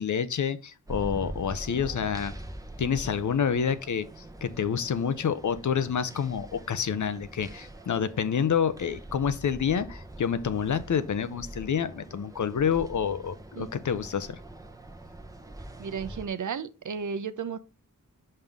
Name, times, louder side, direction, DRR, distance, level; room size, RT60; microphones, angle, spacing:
voice 1, 0.0-2.3 2.8-4.1 4.4-14.4, left 7 dB, 60° left, 0.7 m, -28 dB
sound 1, 0.9-16.3, right 1 dB, 10° right, 0.9 m, -43 dB
voice 2, 15.8-17.6, right 6 dB, 60° right, 0.7 m, -33 dB
5.6 x 5.5 x 3.5 m
cardioid pair, 70°, 34 cm